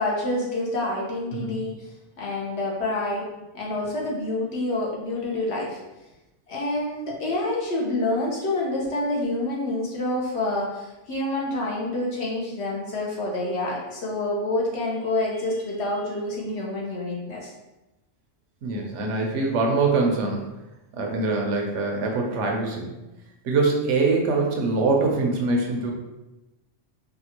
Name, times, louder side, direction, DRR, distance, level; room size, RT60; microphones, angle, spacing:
voice 1, 0.0-1.7 2.2-3.3 3.5-5.8 6.5-17.5, left 2 dB, 60° left, -3 dB, 1.0 m, -27 dB
voice 2, 18.6-20.4 21.0-22.9 23.4-25.9, right 3 dB, 70° right, 1 dB, 0.9 m, -23 dB
3.5 x 2.3 x 2.9 m, 0.99 s
omnidirectional pair, 1.3 m